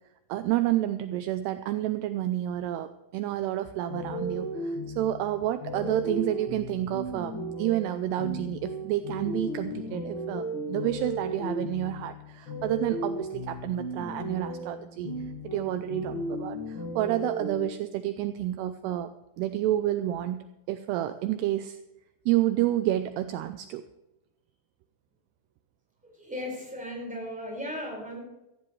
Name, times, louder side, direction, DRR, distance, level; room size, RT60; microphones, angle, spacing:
voice 1, 0.3-19.1 19.4-21.8 22.3-23.8, right 13 dB, 80° right, 10 dB, 2.5 m, -30 dB
sound 1, 3.9-17.6, equal, 65° left, 1.2 m, -35 dB
voice 2, 26.0-28.2, left 1 dB, ahead, -1 dB, 4.5 m, -36 dB
17.5 x 15.0 x 3.2 m, 0.93 s
omnidirectional pair, 5.0 m